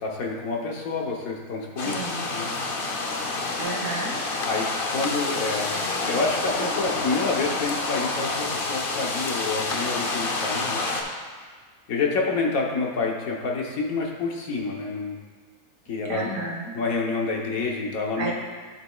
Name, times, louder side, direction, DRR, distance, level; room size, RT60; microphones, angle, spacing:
voice 1, 0.0-2.0 2.3-2.5 4.5-4.7 4.9-10.8 11.9-15.2 15.9-16.3 16.7-18.3, left 3 dB, 65° left, -1 dB, 1.4 m, -28 dB
sound 1, 1.8-11.0, left 3 dB, 50° left, 0.7 m, -28 dB
voice 2, 1.8-2.2 3.6-4.2 16.0-16.7 18.2-18.3, right 2 dB, 60° right, -1 dB, 1.3 m, -31 dB
11.0 x 6.1 x 2.3 m, 1.5 s
omnidirectional pair, 1.6 m